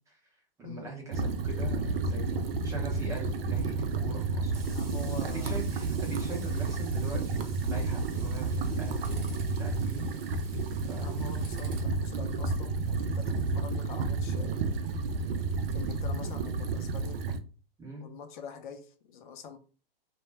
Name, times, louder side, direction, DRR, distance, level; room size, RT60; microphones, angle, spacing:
voice 1, 0.1-2.3 2.6-10.1 10.8-11.3 17.8-18.1, right 3 dB, 10° right, 0.6 m, -42 dB
sound 1, 1.1-17.4, right 3 dB, 75° right, 0.5 m, -31 dB
Tools, 2.2-16.5, right 3 dB, 30° right, 0.9 m, -52 dB
voice 2, 4.7-5.6 11.0-14.6 15.7-17.2 18.0-19.6, left 6 dB, 55° left, 0.5 m, -45 dB
2.2 x 2.1 x 3.3 m
hypercardioid pair, 130°, 30 cm